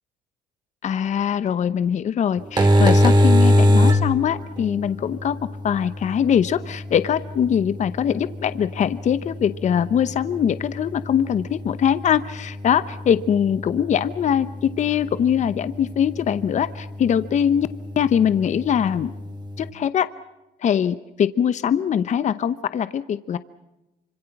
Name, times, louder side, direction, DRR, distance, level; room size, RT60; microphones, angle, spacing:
voice 1, 0.8-5.4 5.6-17.7 18.0-19.1 19.6-20.1 20.6-23.4, left 8 dB, 45° left, 14 dB, 0.9 m, -22 dB
sound 1, 2.4-19.7, left 1 dB, 25° right, 2.9 m, -24 dB
26.5 x 25.5 x 5.9 m, 0.97 s
cardioid pair, 110°, 17 cm